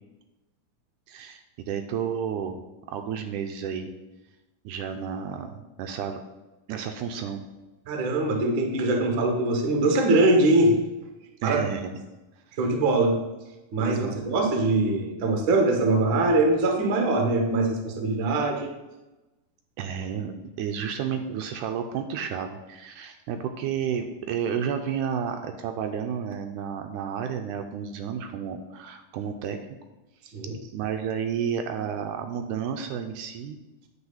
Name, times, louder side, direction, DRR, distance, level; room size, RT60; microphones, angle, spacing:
voice 1, 1.1-2.6 2.9-3.9 4.7-6.2 6.7-7.4 11.4-12.0 13.8-14.4 19.8-29.6 30.7-33.6, right 7 dB, 80° right, 6 dB, 2.1 m, -31 dB
voice 2, 7.9-10.8 11.4-11.6 12.6-13.2 13.7-18.7 30.3-30.5, right 2 dB, 55° right, 3 dB, 1.5 m, -22 dB
8.9 x 4.3 x 7.1 m, 1.1 s
omnidirectional pair, 3.7 m